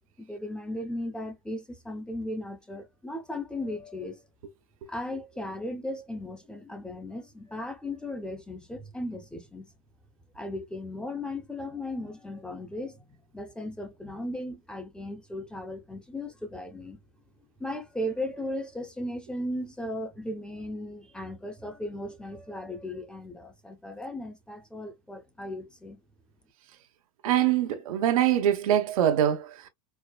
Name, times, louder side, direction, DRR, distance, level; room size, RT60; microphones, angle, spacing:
voice 1, 0.2-4.2 4.9-9.7 10.3-17.0 17.6-26.0, left 1 dB, 5° left, 0.7 m, -36 dB
voice 2, 27.2-29.7, right 11 dB, 75° right, 1.0 m, -24 dB
4.6 x 2.1 x 2.2 m
supercardioid pair, 145°, 18 cm